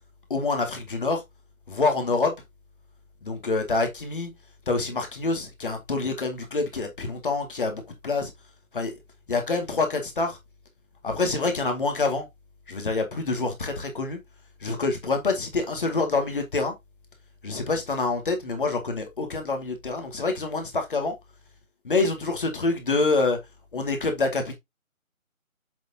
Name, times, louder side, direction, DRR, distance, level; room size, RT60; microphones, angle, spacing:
voice 1, 0.3-1.2 1.7-2.3 3.2-4.3 4.7-8.3 8.7-8.9 9.3-10.4 11.0-12.3 12.7-14.2 14.6-16.7 17.4-21.1 21.8-23.4 23.7-24.5, left 3 dB, 40° left, 2.2 m, -26 dB
7.5 x 6.9 x 2.8 m
figure-of-eight pair, 165°, 42 cm